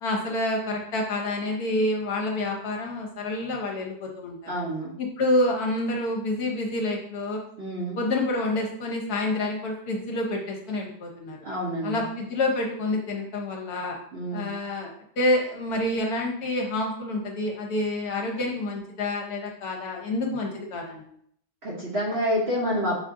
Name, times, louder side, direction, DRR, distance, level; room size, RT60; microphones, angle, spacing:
voice 1, 0.0-4.4 5.0-7.4 7.8-11.4 11.8-14.0 14.3-21.0, left 1 dB, 65° left, 0 dB, 1.3 m, -28 dB
voice 2, 4.5-4.9 7.6-8.0 11.4-12.1 14.1-14.5 21.6-23.0, equal, 45° right, -5 dB, 0.9 m, -28 dB
5.9 x 2.5 x 3.6 m, 0.67 s
omnidirectional pair, 1.9 m